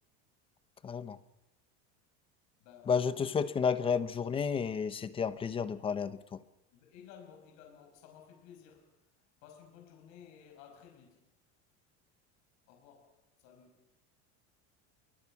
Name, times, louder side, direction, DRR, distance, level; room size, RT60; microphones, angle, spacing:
voice 1, 0.8-1.2 2.9-6.4, left 6 dB, 15° left, 0.8 m, -31 dB
voice 2, 2.6-3.5 6.7-9.1 9.4-11.3 12.7-13.9, left 8 dB, 55° left, 5.4 m, -56 dB
29.0 x 23.5 x 6.0 m
cardioid pair, 170°, 35 cm